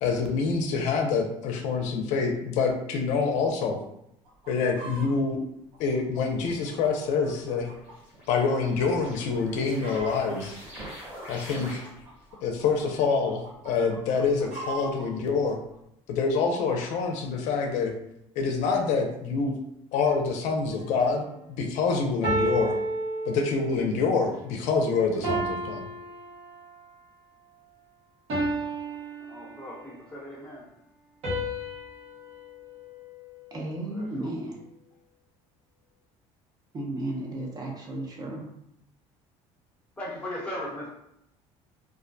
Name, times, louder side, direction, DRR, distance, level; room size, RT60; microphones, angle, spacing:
voice 1, 0.0-3.8 4.5-5.4 5.8-7.7 8.3-10.6 11.3-11.8 12.4-15.6 16.1-17.9 18.4-19.6 19.9-21.3 21.6-22.8 23.3-25.8, left 4 dB, 75° left, 2 dB, 0.4 m, -26 dB
Chicken rooster, 4.3-5.1 5.7-8.0 8.3-8.4 9.0-9.2 9.5-10.4 11.1-12.8 13.3-15.1 15.7-15.8, right 2 dB, 70° right, 1.1 m, -41 dB
sound 1, 7.3-12.2, equal, 15° right, 1.2 m, -44 dB
sound 2, 20.8-21.1 22.2-23.9 25.2-26.9 28.3-29.9 31.2-33.7, right 1 dB, 55° right, 0.9 m, -32 dB
voice 2, 29.2-30.6 33.9-34.3 40.0-40.9, left 1 dB, 10° left, -5 dB, 0.8 m, -38 dB
voice 3, 33.5-34.6 36.7-38.4, right 1 dB, 30° right, 0 dB, 0.5 m, -34 dB
2.3 x 2.1 x 2.5 m, 0.77 s
cardioid pair, 125°, 12 cm